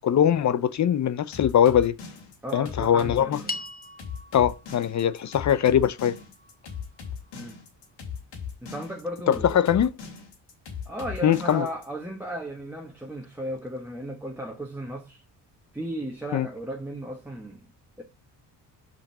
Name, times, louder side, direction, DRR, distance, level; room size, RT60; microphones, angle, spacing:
voice 1, 0.0-1.9 2.5-3.4 4.3-6.1 9.3-9.9 11.2-11.7 16.3-16.5, left 9 dB, 45° left, 0.6 m, -21 dB
sound 1, 1.3-11.9, left 7 dB, 85° left, 3.3 m, -38 dB
voice 2, 2.4-3.5 7.3-7.6 8.6-9.6 10.9-15.2 15.7-17.7 18.0-18.1, equal, 5° right, 1.3 m, -35 dB
sound 2, 3.5-7.9, left 2 dB, 20° left, 1.0 m, -42 dB
5.8 x 5.3 x 6.0 m
cardioid pair, 110°, 41 cm